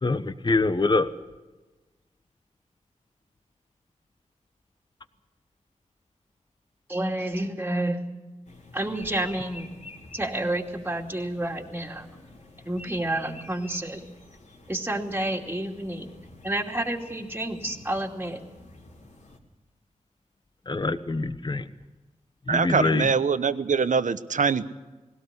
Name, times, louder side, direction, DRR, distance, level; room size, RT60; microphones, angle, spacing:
voice 1, 0.0-1.1 20.7-21.7 22.5-23.1, left 3 dB, 35° left, 11 dB, 1.2 m, -25 dB
voice 2, 6.9-8.0 8.7-9.7 10.1-12.1 12.6-14.1 14.7-16.1 16.4-18.4, right 1 dB, 15° right, 1 dB, 2.6 m, -29 dB
sound 1, 8.4-19.4, left 2 dB, 65° left, 3.7 m, -49 dB
voice 3, 22.5-24.6, right 5 dB, 70° right, 12 dB, 1.0 m, -23 dB
20.5 x 17.5 x 8.3 m, 1.2 s
wide cardioid pair, 80°, 13 cm